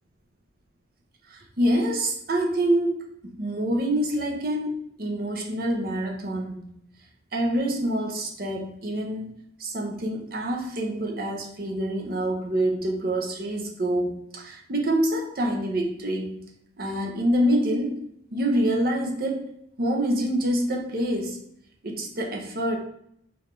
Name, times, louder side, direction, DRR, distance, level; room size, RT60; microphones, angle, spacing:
voice 1, 1.3-3.0 3.2-6.7 7.3-9.3 9.6-16.4 16.8-18.0 18.3-19.5 19.8-21.4 21.8-22.8, right 1 dB, 50° right, 1 dB, 0.8 m, -26 dB
3.9 x 3.8 x 3.3 m, 0.71 s
head